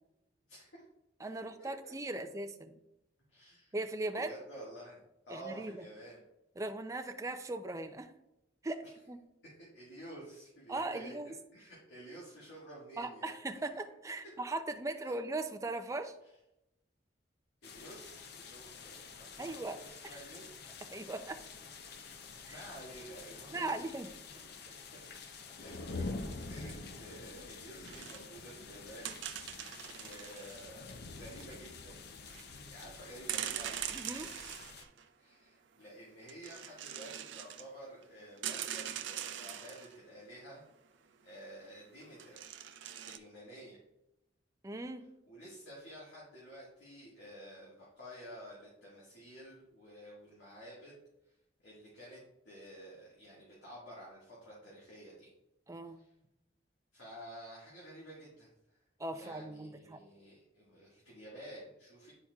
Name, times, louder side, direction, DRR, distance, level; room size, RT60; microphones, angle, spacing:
voice 1, 0.5-0.8 1.4-2.2 3.3-3.7 4.2-5.0 5.3-6.2 8.8-8.9 9.4-11.1 11.5-13.3 14.2-14.3 15.0-15.1 16.2-16.3 17.6-20.6 21.8-21.9 22.4-23.9 24.6-24.7 25.2-32.0 32.7-33.8 35.2-40.6 41.2-42.6 43.0-43.8 45.3-50.9 51.2-52.2 52.5-55.3 55.8-56.1 56.9-58.8 59.1-62.1, right 1 dB, 75° left, -6 dB, 1.7 m, -51 dB
voice 2, 1.2-2.8 3.7-4.4 5.3-5.8 6.6-8.1 8.6-9.2 10.7-11.3 13.0-16.2 19.4-19.8 20.0-20.2 20.9-21.4 23.5-24.1 33.9-34.3 44.6-45.1 55.7-56.0 59.0-60.0, right 2 dB, 15° right, 7 dB, 0.4 m, -39 dB
sound 1, 17.6-34.8, left 4 dB, 60° left, 0.6 m, -47 dB
sound 2, 27.8-28.2 29.0-30.7 31.2-31.6 32.3-32.4 33.3-35.0 36.3-37.7 38.0-38.1 38.4-40.0 42.0-43.2, right 10 dB, 75° right, 0.5 m, -42 dB
9.9 x 4.3 x 2.3 m, 0.90 s
head